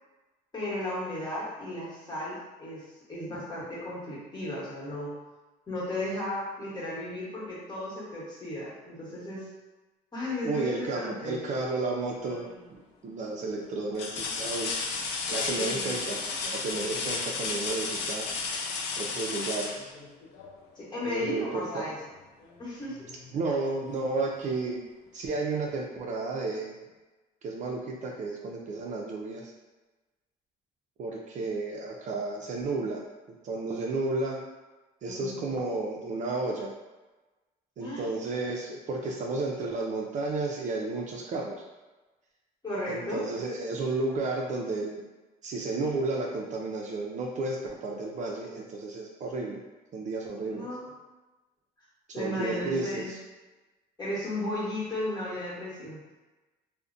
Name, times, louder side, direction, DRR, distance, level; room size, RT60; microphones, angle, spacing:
voice 1, 0.5-5.1 5.7-9.5 10.1-11.5 15.3-16.0 16.4-16.5 20.7-22.0 22.6-23.1 35.0-35.6 37.8-38.1 42.6-43.2 50.4-50.9 52.1-53.1 54.0-56.1, left 1 dB, 25° left, -8 dB, 1.1 m, -35 dB
voice 2, 10.4-12.5 13.0-14.7 15.3-18.3 19.0-19.9 21.1-21.8 23.3-24.8 25.1-26.8 27.4-29.5 31.0-33.0 33.4-34.4 35.0-36.7 37.8-41.6 42.9-45.0 45.4-49.6 49.9-50.7 52.2-53.2, right 3 dB, 45° right, -1 dB, 0.4 m, -32 dB
sound 1, 12.2-12.7 13.2-13.3 13.9-20.6 22.4-22.5 23.0-24.0 25.4-25.5, left 4 dB, 90° left, 0.4 m, -33 dB
2.4 x 2.0 x 2.5 m, 1.2 s
cardioid pair, 110°, 17 cm